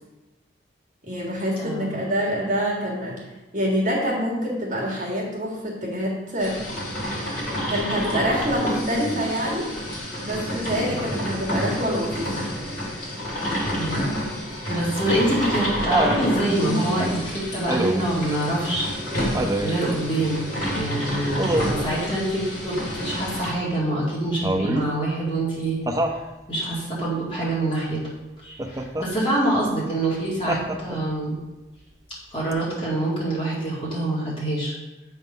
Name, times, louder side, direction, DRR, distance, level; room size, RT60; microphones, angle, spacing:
voice 1, 1.0-3.2 3.5-6.6 7.7-9.7 10.2-12.3, equal, 45° right, -4 dB, 1.7 m, -26 dB
voice 2, 1.6-2.0 10.8-11.0 13.7-14.1 14.7-18.9 19.2-20.5 20.8-25.8 26.5-28.0 28.4-31.4 32.3-34.7, right 1 dB, 30° left, -6 dB, 2.1 m, -26 dB
sound 1, 6.4-23.5, equal, 50° left, 2.5 m, -29 dB
Laughter, 15.0-16.3 17.7-18.2 19.3-19.8 21.4-21.9 24.4-24.9 25.9-26.2 28.6-29.1 30.5-31.1 32.5-32.6, right 1 dB, 20° right, 0.5 m, -25 dB
7.9 x 3.6 x 5.3 m, 1.1 s
head